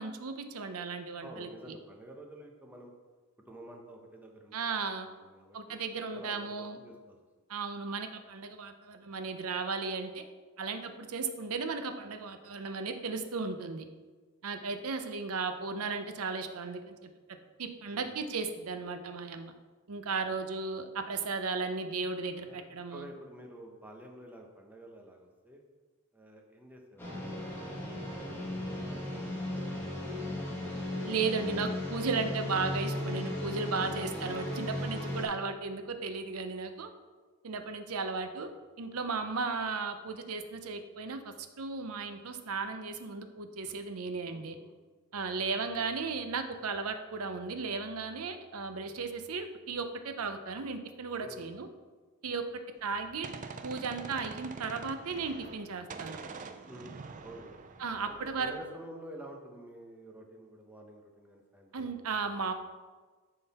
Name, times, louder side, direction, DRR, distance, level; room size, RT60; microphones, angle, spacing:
voice 1, 0.0-1.7 4.5-5.1 5.5-6.8 7.5-10.2 10.6-13.9 14.4-17.0 17.6-19.5 19.9-23.0 31.0-36.9 37.4-38.5 38.8-44.6 45.1-51.7 52.2-52.4 52.8-53.3 53.6-56.2 57.8-58.5 61.7-62.5, right 4 dB, 85° right, 8 dB, 0.7 m, -35 dB
voice 2, 1.2-2.9 3.5-5.8 6.1-7.2 17.9-18.3 20.2-20.3 22.4-25.6 26.1-27.2 27.6-30.2 31.3-32.1 44.2-44.8 51.2-51.5 52.3-52.4 56.7-57.5 58.0-61.9, right 1 dB, 10° right, 1 dB, 0.8 m, -50 dB
sound 1, 27.0-35.3, left 1 dB, 10° left, 1.4 m, -36 dB
Gunshot gunfire, 52.8-55.6 55.9-58.6, right 4 dB, 35° right, 0.4 m, -45 dB
10.0 x 3.9 x 4.2 m, 1.4 s
head